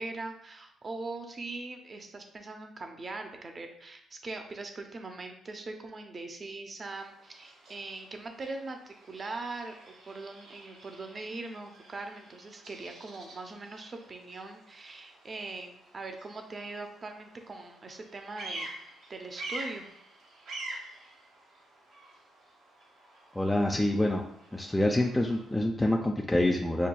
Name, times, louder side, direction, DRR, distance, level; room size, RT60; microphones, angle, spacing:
voice 1, 0.0-19.8, right 3 dB, 35° right, 5 dB, 0.5 m, -41 dB
Bird vocalization bird call bird song, 6.8-25.6, right 2 dB, 80° right, 1.2 m, -47 dB
voice 2, 23.3-24.2 24.5-26.9, left 1 dB, 10° left, 0 dB, 0.3 m, -26 dB
5.6 x 2.2 x 2.2 m, 0.71 s
cardioid pair, 90°, 0 cm